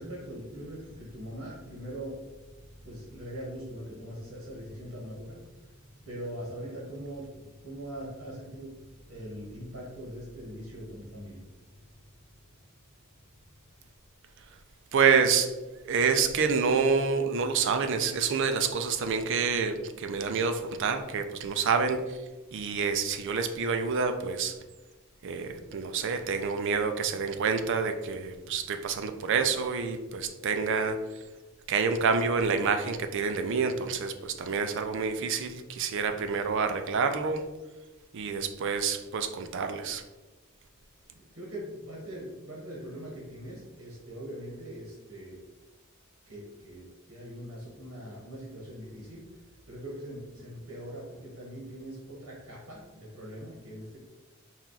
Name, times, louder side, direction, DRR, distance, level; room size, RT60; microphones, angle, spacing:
voice 1, 0.0-2.3 2.6-12.7 41.1-45.4 46.3-54.0, equal, 80° right, -4 dB, 1.2 m, -42 dB
voice 2, 14.9-15.6 15.8-22.2 22.5-24.6 25.2-31.0 31.7-37.4 38.1-40.0, right 5 dB, 60° right, 7 dB, 0.4 m, -28 dB
4.3 x 2.3 x 3.9 m, 1.1 s
head